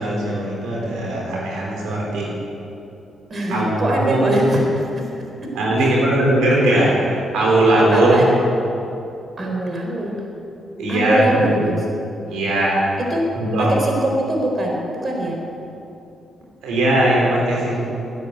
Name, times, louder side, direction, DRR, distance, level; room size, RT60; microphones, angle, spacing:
voice 1, 0.0-2.3 3.5-4.5 5.5-8.3 10.8-11.6 12.3-12.8 13.3-13.7 16.6-17.8, right 1 dB, 85° right, -3 dB, 3.9 m, -19 dB
voice 2, 3.3-4.6 7.9-8.2 9.4-10.1 10.9-11.8 13.1-13.2 13.6-15.4, right 1 dB, 45° right, 0 dB, 4.2 m, -22 dB
14.5 x 11.0 x 8.2 m, 2.8 s
cardioid pair, 65°, 0 cm